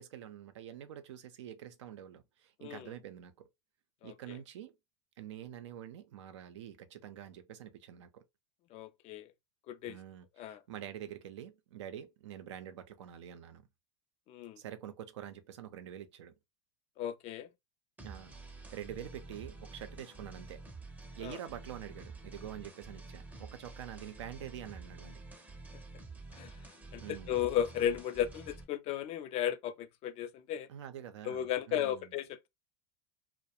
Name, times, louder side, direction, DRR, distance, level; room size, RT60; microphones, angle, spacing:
voice 1, 0.0-3.5 4.0-4.8 5.2-8.2 9.8-13.7 14.6-16.3 18.0-20.6 21.2-25.2 27.0-27.4 30.7-32.1, right 10 dB, 75° right, 0.5 m, -46 dB
voice 2, 4.0-4.4 8.7-9.3 9.7-10.0 10.4-10.6 14.3-14.6 17.0-17.5 21.2-21.4 26.4-26.5 26.9-27.0 27.3-30.7 31.2-32.5, left 10 dB, 45° left, 0.4 m, -35 dB
sound 1, 18.0-28.6, right 3 dB, 10° right, 0.6 m, -49 dB
2.3 x 2.1 x 2.8 m
hypercardioid pair, 95°, 15 cm